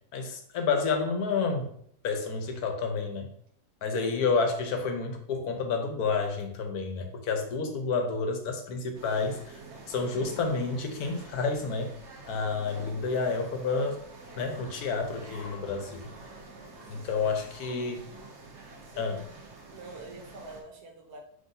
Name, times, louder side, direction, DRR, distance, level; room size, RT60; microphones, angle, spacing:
voice 1, 0.1-1.7 2.0-3.3 3.8-9.6 9.9-11.9 12.3-14.0 14.4-16.1 16.9-18.1 19.0-19.2, left 4 dB, 75° left, 4 dB, 1.3 m, -30 dB
sound 1, 8.9-20.6, right 3 dB, 50° right, 1.1 m, -48 dB
voice 2, 12.6-13.3 16.5-17.4 18.9-19.3 19.7-21.2, right 2 dB, 80° right, 1 dB, 1.4 m, -47 dB
5.4 x 3.4 x 2.6 m, 0.65 s
omnidirectional pair, 1.6 m